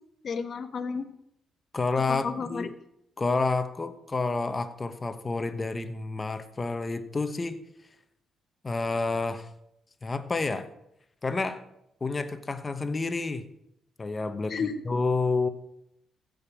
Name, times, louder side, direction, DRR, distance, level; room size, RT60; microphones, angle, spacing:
voice 1, 0.2-1.1 2.1-2.7 14.5-14.8, left 5 dB, 50° left, 8 dB, 1.2 m, -32 dB
voice 2, 1.7-2.7 3.2-7.6 8.6-9.5 10.0-10.7 11.2-11.6 12.0-13.5 14.0-15.5, left 3 dB, 25° left, 10 dB, 1.2 m, -29 dB
15.0 x 5.3 x 7.3 m, 0.80 s
cardioid pair, 90°, 0 cm